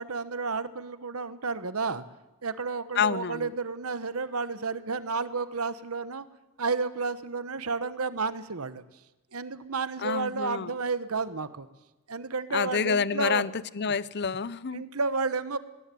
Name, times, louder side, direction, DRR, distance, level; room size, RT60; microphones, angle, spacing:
voice 1, 0.0-2.0 2.4-6.3 6.6-8.8 9.3-11.7 12.1-13.4 14.7-15.6, right 4 dB, 80° right, 13 dB, 1.2 m, -31 dB
voice 2, 3.0-3.5 10.0-10.7 12.5-14.8, left 6 dB, 50° left, 19 dB, 0.7 m, -28 dB
20.5 x 18.0 x 9.3 m, 1.0 s
head